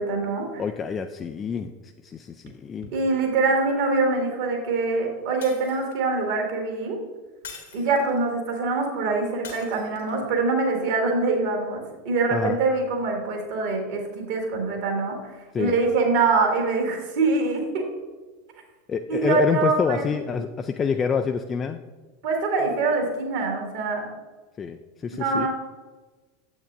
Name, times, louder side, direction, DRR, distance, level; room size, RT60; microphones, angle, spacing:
voice 1, 0.0-0.6 2.9-7.0 7.7-15.2 15.6-17.9 19.1-20.4 22.2-24.0 25.1-25.5, right 3 dB, 55° right, 1 dB, 1.7 m, -24 dB
voice 2, 0.6-1.7 2.0-2.9 12.3-12.6 15.5-15.7 18.9-21.8 24.6-25.5, left 6 dB, 25° left, 6 dB, 0.3 m, -27 dB
Shatter, 5.4-6.1 7.4-8.3 9.4-10.2, left 6 dB, 65° left, 1.3 m, -43 dB
9.1 x 7.9 x 2.5 m, 1.3 s
figure-of-eight pair, 80°, 0 cm